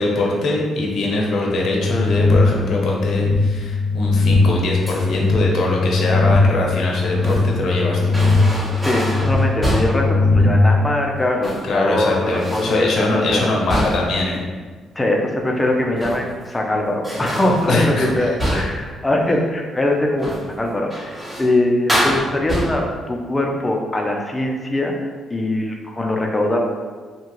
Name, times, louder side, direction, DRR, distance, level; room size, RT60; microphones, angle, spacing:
voice 1, 0.0-8.2 11.6-14.4 17.7-18.1 18.5-18.8, left 2 dB, 65° left, -1 dB, 0.6 m, -22 dB
sound 1, 1.6-10.8, left 3 dB, 60° right, 1.1 m, -20 dB
sound 2, 4.9-5.3 6.8-7.6 8.1-10.1 11.2-11.7 12.1-12.9 13.3-14.2 15.8-16.5 17.0-18.9 20.1-20.5 20.9-21.5 21.9-23.0, equal, 15° right, 1.0 m, -26 dB
voice 2, 8.8-13.4 15.0-24.9 25.3-26.6, left 1 dB, 20° left, 0 dB, 0.5 m, -22 dB
2.8 x 2.3 x 2.9 m, 1.5 s
cardioid pair, 90°, 0 cm